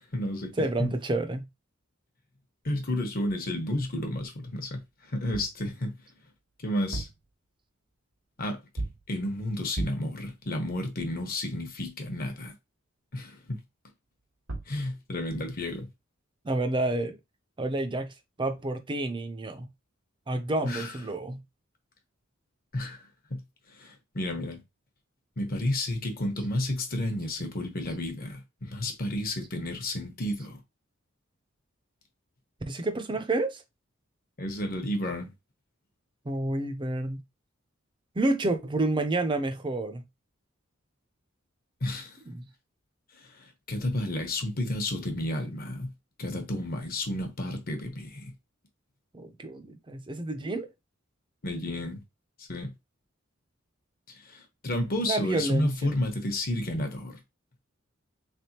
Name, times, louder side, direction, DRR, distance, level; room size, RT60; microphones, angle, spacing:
voice 1, 0.0-0.5 0.8-0.9 2.6-4.8 5.1-5.9 6.6-7.1 8.4-8.6 9.1-12.5 13.1-13.4 14.7-15.9 20.6-20.9 22.7-23.0 23.3-23.4 23.8-24.6 25.4-30.6 34.4-35.3 41.8-42.1 43.7-45.9 46.2-48.3 51.4-52.0 52.5-52.7 54.3-57.2, left 1 dB, 45° left, 1.0 m, -31 dB
voice 2, 0.6-1.5 16.4-17.2 17.6-18.1 18.4-19.7 20.3-21.4 32.7-33.6 36.3-37.2 38.2-40.0 42.3-42.4 49.1-50.7 55.1-55.9, right 2 dB, 25° right, 0.5 m, -29 dB
sound 1, 5.3-5.6 6.7-7.3 8.8-9.1 9.7-10.2 14.2-14.3 14.5-14.8, right 2 dB, 85° right, 1.4 m, -35 dB
3.5 x 3.4 x 2.9 m
head